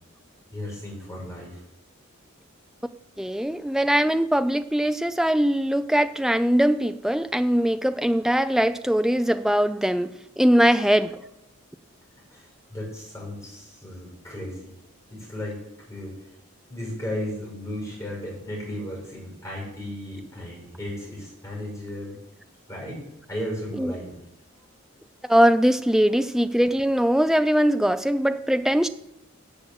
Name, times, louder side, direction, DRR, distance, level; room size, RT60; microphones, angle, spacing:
voice 1, 0.5-1.6 12.3-14.7 15.1-15.6 15.9-16.1 16.7-22.2 22.7-23.0 23.3-24.1, left 1 dB, 15° left, 6.4 m, -35 dB
voice 2, 3.2-11.2 23.7-23.9 25.3-28.9, equal, ahead, 0.4 m, -21 dB
10.5 x 8.0 x 7.9 m
head